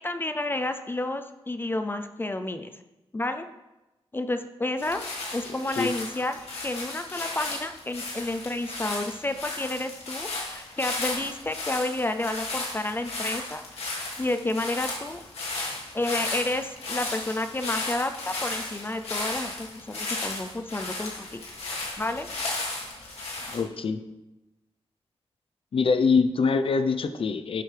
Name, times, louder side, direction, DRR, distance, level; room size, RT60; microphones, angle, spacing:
voice 1, 0.0-2.7 3.1-3.5 4.1-5.0 5.3-15.2 15.9-21.4 22.0-22.3, left 2 dB, 20° left, 8 dB, 0.5 m, -30 dB
sound 1, 4.8-23.6, left 2 dB, 85° left, 2.3 m, -35 dB
voice 2, 23.5-24.0 25.7-27.6, left 5 dB, 60° left, 8 dB, 0.7 m, -24 dB
11.5 x 7.8 x 3.4 m, 1.0 s
wide cardioid pair, 160°, 10 cm